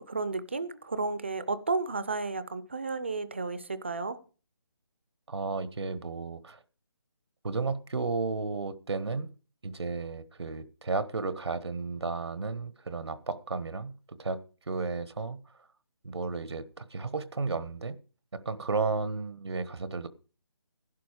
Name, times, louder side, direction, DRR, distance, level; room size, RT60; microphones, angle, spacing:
voice 1, 0.0-4.2, right 3 dB, 25° right, 0.5 m, -32 dB
voice 2, 5.3-6.6 7.4-9.3 9.6-15.4 16.0-18.0 18.3-20.1, right 4 dB, 85° right, 1.2 m, -33 dB
12.0 x 11.5 x 5.0 m
hypercardioid pair, 180°, 14 cm